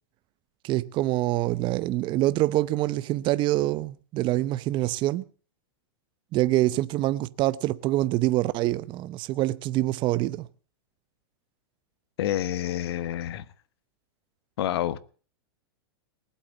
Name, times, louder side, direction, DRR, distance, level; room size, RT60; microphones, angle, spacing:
voice 1, 0.6-5.2 6.3-10.5, right 16 dB, 35° right, 0.8 m, -25 dB
voice 2, 12.2-13.5 14.6-15.0, left 12 dB, 70° left, 1.2 m, -28 dB
19.5 x 8.4 x 8.3 m
hypercardioid pair, 130°, 14 cm